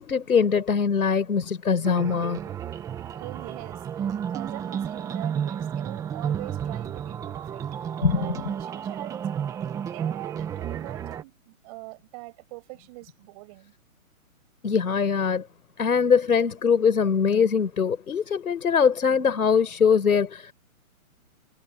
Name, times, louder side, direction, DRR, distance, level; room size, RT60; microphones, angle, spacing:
voice 1, 0.0-2.4 8.0-8.2 14.6-15.5 15.8-20.5, left 6 dB, 90° left, 5.6 m, -22 dB
sound 1, 1.8-11.2, right 8 dB, 10° right, 1.5 m, -32 dB
voice 2, 3.2-9.6 9.9-13.7, right 26 dB, 25° right, 7.4 m, -43 dB
hypercardioid pair, 165°, 43 cm